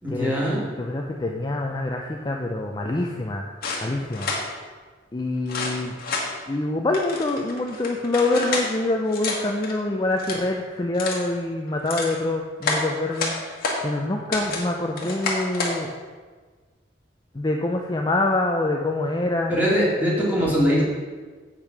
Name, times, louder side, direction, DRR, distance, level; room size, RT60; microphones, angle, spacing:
voice 1, 0.0-0.6 19.5-20.8, equal, 10° right, -6 dB, 2.7 m, -21 dB
voice 2, 0.8-3.4 3.8-4.3 5.1-6.0 6.5-13.3 13.8-15.9 17.3-19.5, left 2 dB, 20° left, 1 dB, 0.5 m, -25 dB
sound 1, 3.6-4.4 5.5-6.3 6.9-8.7 9.1-9.7 10.1-10.5 10.9-11.3 11.7-12.2 12.6-13.8 14.3-14.7 15.0-15.8, left 3 dB, 50° left, 1.8 m, -29 dB
8.3 x 6.1 x 6.1 m, 1.4 s
head